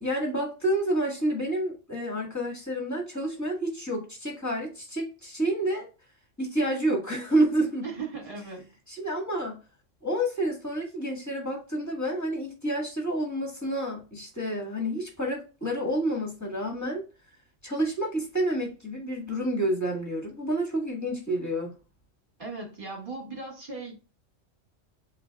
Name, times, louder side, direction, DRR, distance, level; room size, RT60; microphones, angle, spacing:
voice 1, 0.0-5.9 6.4-7.8 8.9-9.6 10.0-17.0 17.6-21.7, right 1 dB, 15° left, 1.7 m, -29 dB
voice 2, 7.8-8.7 22.4-24.0, right 4 dB, 40° right, 2.2 m, -38 dB
7.9 x 2.7 x 2.3 m
omnidirectional pair, 1.3 m